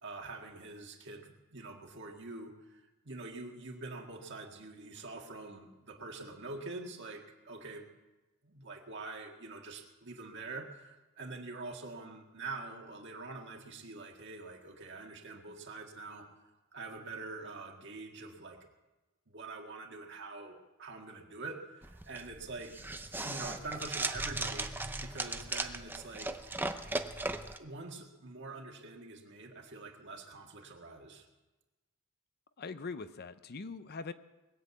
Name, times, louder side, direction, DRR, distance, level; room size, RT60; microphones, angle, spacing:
voice 1, 0.0-7.9 8.4-18.6 19.3-22.7 23.2-26.7 27.6-31.3, right 3 dB, 55° right, 2 dB, 1.9 m, -45 dB
sound 1, 21.8-27.6, right 2 dB, 10° right, 0.6 m, -37 dB
voice 2, 32.6-34.1, left 4 dB, 45° left, 12 dB, 0.6 m, -42 dB
20.5 x 7.7 x 8.3 m, 1.1 s
head